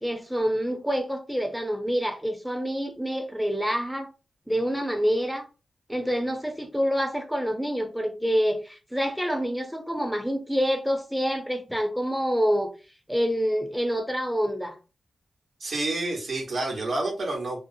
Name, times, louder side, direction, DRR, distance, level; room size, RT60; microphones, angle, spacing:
voice 1, 0.0-4.1 4.5-5.5 5.9-12.7 13.1-14.8, equal, ahead, 0.5 m, -27 dB
voice 2, 15.6-17.6, right 2 dB, 70° right, 1.0 m, -29 dB
2.6 x 2.0 x 2.6 m
cardioid pair, 75°, 0 cm